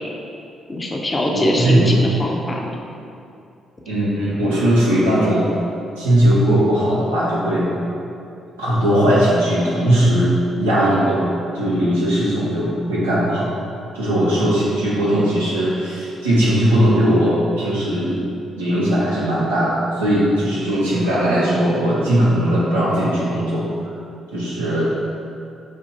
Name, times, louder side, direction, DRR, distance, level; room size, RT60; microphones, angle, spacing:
voice 1, 0.7-2.7, left 1 dB, 25° left, 0 dB, 0.6 m, -22 dB
voice 2, 1.3-2.1 3.9-5.6 6.0-7.7 8.6-11.2 11.5-13.5 13.9-18.1 18.6-23.7 24.3-24.9, equal, 85° right, -9 dB, 0.8 m, -18 dB
5.3 x 2.9 x 2.6 m, 2.6 s
hypercardioid pair, 45°, 0 cm